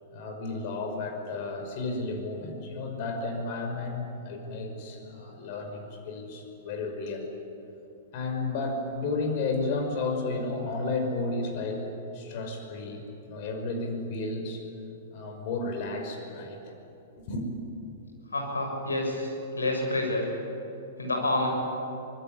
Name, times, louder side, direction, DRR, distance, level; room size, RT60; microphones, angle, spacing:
voice 1, 0.1-7.3 8.1-11.9 12.1-14.6 15.1-16.7 17.3-17.5, left 3 dB, 45° left, 4 dB, 5.6 m, -32 dB
voice 2, 18.3-20.3 21.0-21.5, left 2 dB, 80° left, 2 dB, 6.8 m, -28 dB
25.0 x 21.0 x 9.8 m, 2.9 s
figure-of-eight pair, 105°, 0 cm